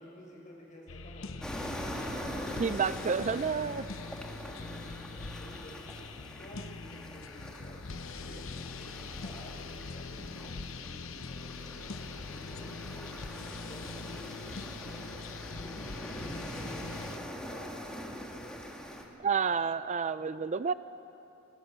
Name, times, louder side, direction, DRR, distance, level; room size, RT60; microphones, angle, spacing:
voice 1, 0.0-1.8 2.2-3.0 3.5-6.1 6.4-12.8 13.2-18.9 19.5-19.7, equal, 40° left, -2 dB, 6.6 m, -52 dB
sound 1, 0.9-17.2, left 4 dB, 70° left, 0.9 m, -43 dB
sound 2, 1.4-19.0, equal, 5° left, 2.2 m, -43 dB
voice 2, 2.6-3.8 19.2-20.7, right 5 dB, 35° right, 14 dB, 0.4 m, -30 dB
27.0 x 21.5 x 6.8 m, 2.9 s
head